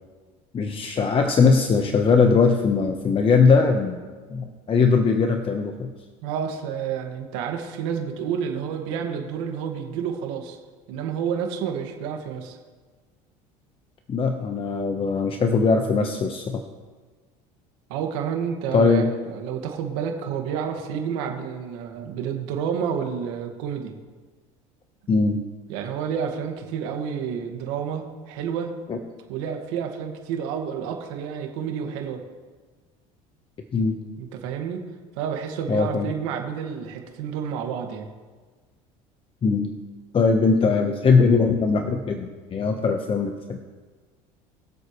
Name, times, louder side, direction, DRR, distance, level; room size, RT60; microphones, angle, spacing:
voice 1, 0.5-4.0 4.3-5.9 14.1-16.6 18.7-19.1 25.1-25.4 28.9-29.0 33.7-34.0 35.7-36.1 39.4-39.7 40.1-43.6, left 4 dB, 35° left, 4 dB, 1.1 m, -20 dB
voice 2, 6.2-10.6 10.9-12.6 17.9-23.9 25.7-28.7 29.3-32.2 34.2-34.8 35.2-38.1, right 7 dB, 80° right, 3 dB, 2.0 m, -30 dB
22.5 x 7.8 x 3.2 m, 1.4 s
supercardioid pair, 95°, 16 cm